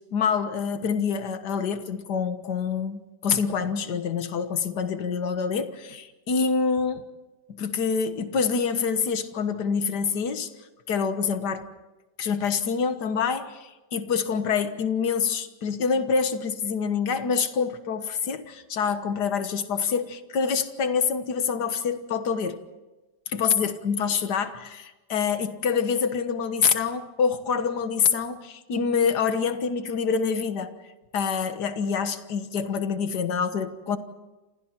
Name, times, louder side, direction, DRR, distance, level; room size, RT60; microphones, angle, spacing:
voice 1, 0.1-7.0 7.6-10.5 10.9-11.7 12.2-22.6 23.3-30.8 31.1-34.0, left 6 dB, 75° left, 9 dB, 1.9 m, -26 dB
29.5 x 27.5 x 4.5 m, 1.1 s
omnidirectional pair, 1.8 m